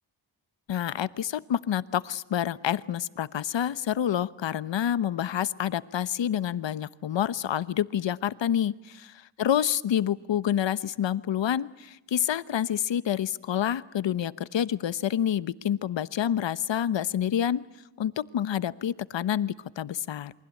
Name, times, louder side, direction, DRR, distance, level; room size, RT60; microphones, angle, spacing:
voice 1, 0.7-17.6 18.0-20.3, left 10 dB, 70° left, 16 dB, 1.1 m, -28 dB
28.0 x 23.5 x 8.5 m, 0.92 s
wide cardioid pair, 105°, 46 cm